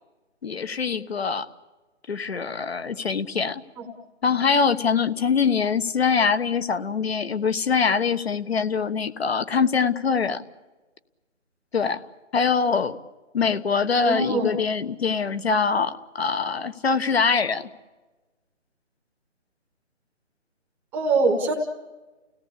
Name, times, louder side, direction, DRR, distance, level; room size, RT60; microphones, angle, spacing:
voice 1, 0.4-1.5 2.1-3.6 4.2-10.4 11.7-12.0 12.3-13.0 13.3-17.7, left 5 dB, 55° left, 11 dB, 1.3 m, -23 dB
voice 2, 13.9-14.4 20.9-21.5, right 3 dB, 5° right, 2 dB, 0.9 m, -23 dB
30.0 x 17.5 x 8.5 m, 1.2 s
figure-of-eight pair, 155°, 36 cm